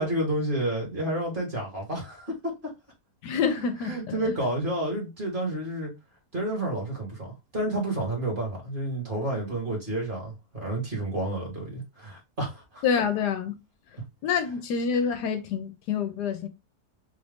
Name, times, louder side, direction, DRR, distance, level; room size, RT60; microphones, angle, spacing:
voice 1, 0.0-2.7 3.6-5.9 6.3-12.8, right 1 dB, 30° right, 1.7 m, -30 dB
voice 2, 3.2-4.3 12.8-13.6 14.2-16.5, left 6 dB, 75° left, 1.2 m, -27 dB
3.8 x 2.6 x 3.4 m
omnidirectional pair, 1.8 m